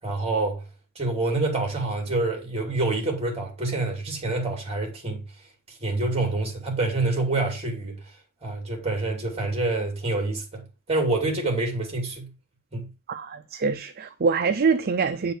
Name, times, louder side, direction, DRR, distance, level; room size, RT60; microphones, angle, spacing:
voice 1, 0.0-0.6 1.0-5.2 5.8-8.0 8.4-12.3 12.7-12.9, right 2 dB, 30° right, 2.7 m, -27 dB
voice 2, 13.1-15.3, right 5 dB, 45° right, 0.5 m, -24 dB
8.9 x 4.7 x 4.8 m
head